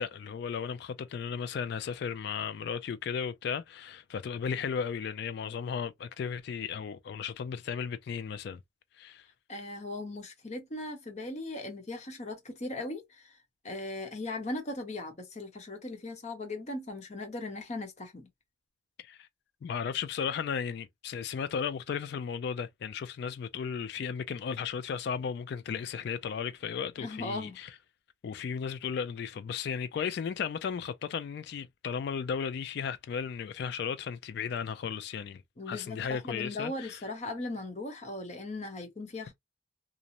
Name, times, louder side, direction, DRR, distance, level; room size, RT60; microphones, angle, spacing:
voice 1, 0.0-8.6 9.0-9.3 19.0-19.3 19.6-27.8 28.2-37.0, left 7 dB, 60° left, 0.3 m, -35 dB
voice 2, 9.5-13.3 13.6-18.3 27.0-27.6 35.6-39.3, left 2 dB, 40° left, 0.8 m, -38 dB
2.5 x 2.0 x 2.8 m
head